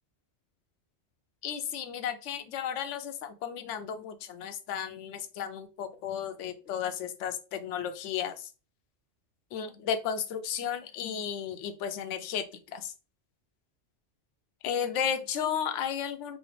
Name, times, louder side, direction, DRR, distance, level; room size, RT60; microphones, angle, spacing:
voice 1, 1.4-8.5 9.5-12.5 12.7-12.9 14.6-16.4, left 8 dB, 85° left, 8 dB, 0.9 m, -33 dB
4.1 x 2.7 x 3.2 m, 0.33 s
omnidirectional pair, 1.2 m